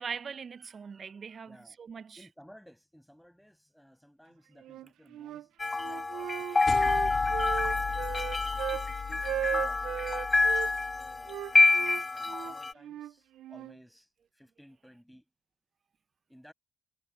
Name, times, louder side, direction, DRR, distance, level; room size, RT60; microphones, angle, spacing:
voice 1, 0.0-2.2, right 6 dB, 45° right, 0.8 m, -41 dB
voice 2, 1.4-1.8 2.2-5.5 5.8-6.9 7.4-10.0 10.6-15.3 16.3-16.5, equal, ahead, 6.9 m, -57 dB
Wind instrument woodwind instrument, 4.6-5.4 5.8-8.9 9.2-10.7 11.3-13.8, right 12 dB, 80° right, 0.3 m, -37 dB
sound 1, 5.6-12.7, left 3 dB, 25° left, 0.8 m, -27 dB
sound 2, 6.7-11.3, left 7 dB, 50° left, 3.9 m, -40 dB
cardioid pair, 90°, 0 cm